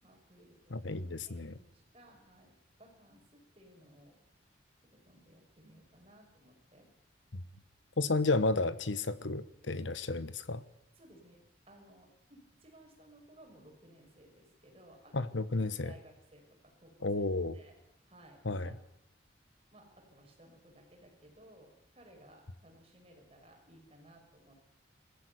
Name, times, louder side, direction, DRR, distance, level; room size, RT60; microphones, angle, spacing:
voice 1, 0.0-4.5 4.9-6.9 8.0-8.2 11.0-15.4 15.8-17.7 18.1-18.9 19.7-24.8, right 1 dB, 30° right, 2 dB, 5.9 m, -59 dB
voice 2, 0.7-1.6 7.3-7.4 8.0-10.6 15.1-15.9 17.0-17.6 18.4-18.8, left 3 dB, 85° left, 14 dB, 1.2 m, -32 dB
20.5 x 15.0 x 9.5 m, 0.84 s
head